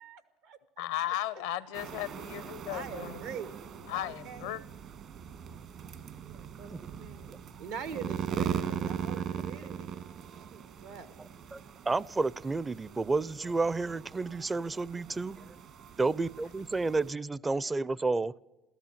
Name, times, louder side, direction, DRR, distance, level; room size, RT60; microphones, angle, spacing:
voice 1, 0.0-0.9 2.7-3.6 4.0-4.6 6.2-10.0 10.4-11.2, right 6 dB, 80° right, 11 dB, 1.4 m, -44 dB
voice 2, 0.8-3.2 3.9-4.6, left 13 dB, 75° left, 18 dB, 0.7 m, -35 dB
sound 1, 1.7-17.1, right 8 dB, 55° right, 1.4 m, -40 dB
voice 3, 11.9-15.6 16.0-18.4, right 3 dB, 20° right, 22 dB, 0.5 m, -31 dB
15.0 x 13.5 x 7.2 m, 1.1 s
hypercardioid pair, 70°, 0 cm